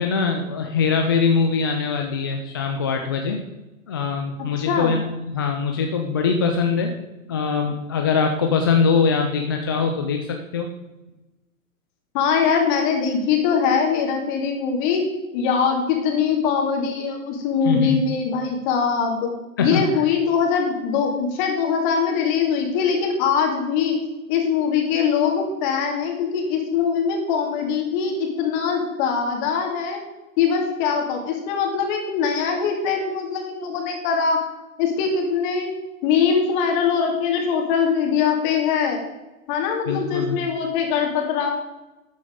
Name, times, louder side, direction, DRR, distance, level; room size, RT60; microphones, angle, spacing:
voice 1, 0.0-3.4 3.9-7.0 7.3-10.7 17.6-18.0 19.6-19.9 39.9-40.4, left 5 dB, 20° left, 3 dB, 0.4 m, -22 dB
voice 2, 4.6-4.9 12.1-15.0 15.3-19.3 19.6-24.0 24.3-30.0 30.4-34.4 34.8-35.7 36.0-39.0 39.5-41.5, left 6 dB, 35° left, 2 dB, 2.6 m, -22 dB
12.5 x 9.0 x 3.8 m, 1.0 s
figure-of-eight pair, 115°, 42 cm